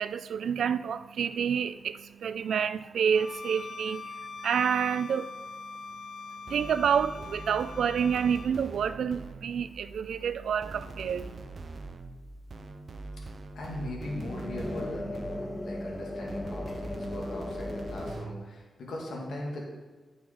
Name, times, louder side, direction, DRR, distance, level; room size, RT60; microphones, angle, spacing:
voice 1, 0.0-11.4, right 7 dB, 85° right, 13 dB, 0.3 m, -29 dB
Bowed string instrument, 3.1-8.5, left 4 dB, 65° left, 0.5 m, -43 dB
sound 1, 6.5-9.7 10.6-15.8 16.3-18.5, right 3 dB, 55° right, 0.7 m, -43 dB
sound 2, 9.5-18.1, left 1 dB, 20° left, 1.2 m, -40 dB
voice 2, 13.6-19.7, left 1 dB, 80° left, -3 dB, 2.2 m, -39 dB
9.5 x 5.4 x 4.8 m, 1.4 s
cardioid pair, 80°, 0 cm